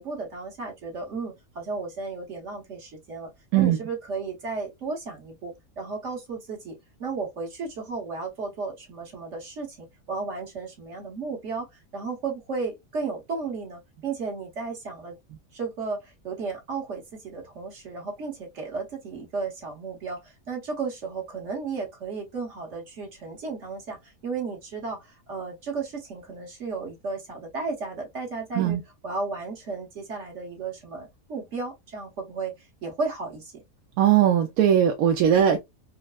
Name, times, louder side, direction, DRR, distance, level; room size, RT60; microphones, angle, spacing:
voice 1, 0.0-11.7 11.9-15.2 15.5-28.8 29.0-33.6, right 4 dB, 55° right, 1.6 m, -34 dB
voice 2, 34.0-35.6, right 10 dB, 80° right, 1.0 m, -19 dB
4.4 x 2.0 x 2.2 m
omnidirectional pair, 1.5 m